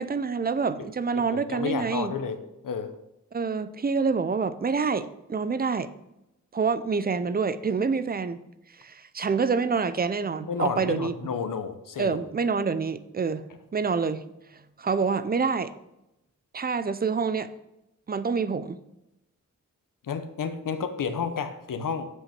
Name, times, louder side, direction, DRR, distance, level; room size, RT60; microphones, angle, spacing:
voice 1, 0.0-2.1 3.3-5.9 6.5-8.4 8.8-11.1 12.0-13.5 13.7-14.2 14.8-15.7 16.5-17.5 18.1-18.8, right 5 dB, 30° right, 14 dB, 0.5 m, -27 dB
voice 2, 1.1-2.4 2.6-2.9 10.4-12.3 20.0-22.1, left 6 dB, 80° left, 9 dB, 0.9 m, -31 dB
7.9 x 6.1 x 5.9 m, 0.90 s
wide cardioid pair, 115°, 32 cm